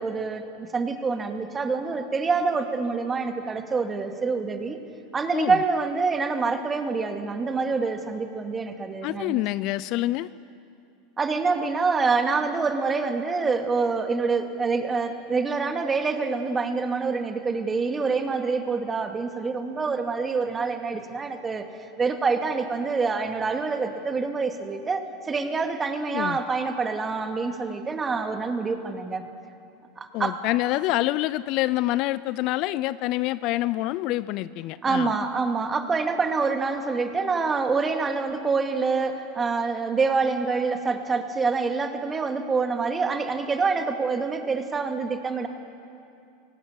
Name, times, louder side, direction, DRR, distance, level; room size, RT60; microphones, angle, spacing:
voice 1, 0.0-4.8 5.1-9.4 11.2-21.7 22.0-29.3 30.0-30.4 34.8-45.5, right 4 dB, 25° right, 5 dB, 2.4 m, -26 dB
voice 2, 9.0-10.3 26.1-26.4 30.1-35.1, left 16 dB, 55° left, 18 dB, 0.6 m, -26 dB
23.5 x 18.5 x 8.7 m, 2.6 s
hypercardioid pair, 85°, 0 cm